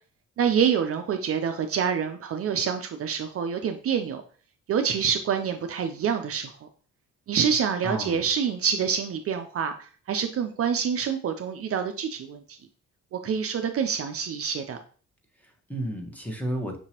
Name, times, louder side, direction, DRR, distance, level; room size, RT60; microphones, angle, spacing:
voice 1, 0.4-4.2 4.7-6.7 7.3-12.6 13.1-14.8, right 7 dB, 50° right, 6 dB, 0.5 m, -27 dB
voice 2, 7.8-8.3 15.4-16.8, right 1 dB, 5° left, 2 dB, 1.0 m, -32 dB
5.9 x 2.8 x 2.8 m, 0.42 s
cardioid pair, 90°, 30 cm